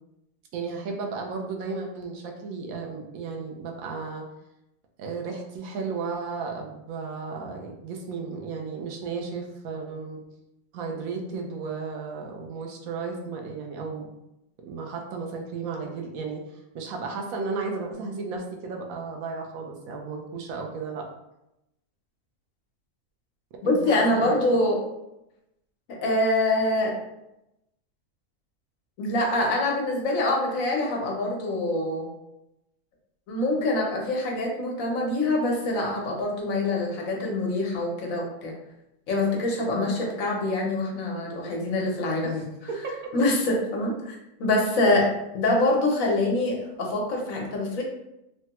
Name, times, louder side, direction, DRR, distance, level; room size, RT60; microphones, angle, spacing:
voice 1, 0.5-4.2 5.0-10.2 10.7-14.1 14.6-16.4 16.7-21.1 23.6-24.4 39.6-40.0 42.2-43.0, right 4 dB, 85° right, 2 dB, 1.0 m, -34 dB
voice 2, 23.6-24.8 25.9-27.0 29.0-32.1 33.3-38.5 39.1-42.5 43.1-47.8, left 2 dB, 75° left, -1 dB, 1.1 m, -25 dB
3.2 x 2.2 x 2.8 m, 0.88 s
omnidirectional pair, 1.4 m